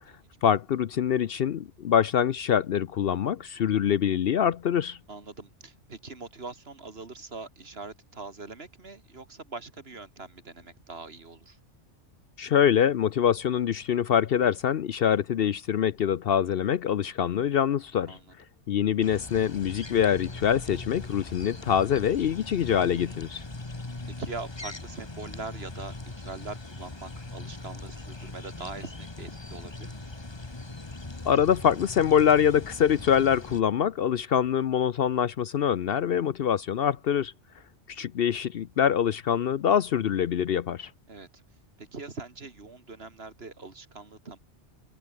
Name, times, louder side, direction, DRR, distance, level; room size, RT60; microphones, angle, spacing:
voice 1, 0.4-5.0 12.4-18.2 18.7-23.4 31.2-37.3 37.9-40.9, left 8 dB, 60° left, 0.8 m, -24 dB
voice 2, 5.1-11.6 18.1-18.2 24.0-30.1 41.1-41.4 41.8-44.4, right 3 dB, 55° right, 2.5 m, -42 dB
sound 1, 19.0-33.6, left 2 dB, 20° left, 1.5 m, -41 dB
omnidirectional pair, 1.2 m